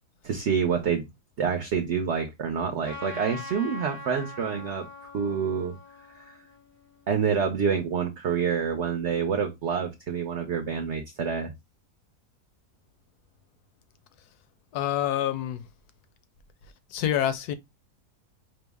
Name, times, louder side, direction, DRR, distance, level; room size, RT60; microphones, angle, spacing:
voice 1, 0.2-1.0 1.4-5.8 6.2-6.4 7.1-11.5, right 6 dB, 60° right, 0.8 m, -27 dB
Trumpet, 2.8-7.5, left 2 dB, 15° left, 0.5 m, -43 dB
voice 2, 14.7-15.6 16.9-17.5, left 11 dB, 75° left, 1.1 m, -27 dB
5.3 x 2.0 x 3.4 m
omnidirectional pair, 1.7 m